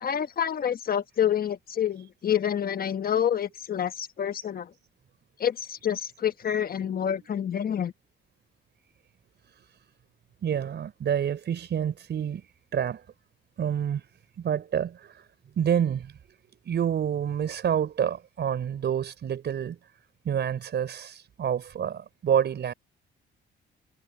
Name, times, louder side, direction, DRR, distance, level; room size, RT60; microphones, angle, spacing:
voice 1, 0.0-4.7 5.4-7.9, left 9 dB, 50° left, 1.3 m, -28 dB
voice 2, 10.4-12.4 12.7-13.0 13.6-14.1 14.4-15.2 15.6-16.1 16.6-19.8 20.2-22.7, right 8 dB, 60° right, 5.0 m, -28 dB
cardioid pair, 90°, 20 cm